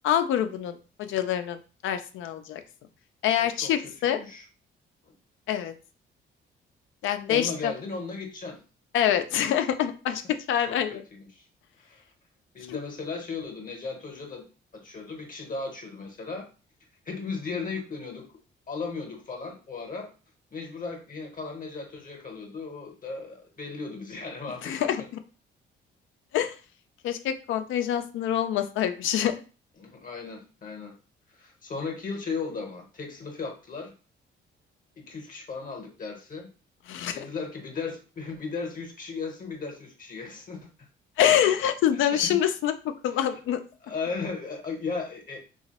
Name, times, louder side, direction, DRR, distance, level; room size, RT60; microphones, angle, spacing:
voice 1, 0.0-1.6 1.8-2.6 3.2-4.2 5.5-5.7 7.0-7.7 8.9-11.0 12.7-12.8 24.6-25.0 26.3-26.5 27.0-29.3 36.9-37.2 41.2-43.6, left 10 dB, 80° left, 8 dB, 0.4 m, -25 dB
voice 2, 3.4-4.4 5.0-5.1 7.3-8.6 10.7-11.5 11.8-12.0 12.5-14.5 14.7-16.5 17.0-18.3 18.7-20.1 20.5-25.1 29.8-30.9 31.3-33.9 35.0-36.5 37.1-40.9 41.9-42.4 43.1-43.3 43.8-45.4, left 4 dB, 45° left, 2 dB, 0.8 m, -36 dB
2.9 x 2.3 x 2.9 m, 0.35 s
cardioid pair, 90°, 20 cm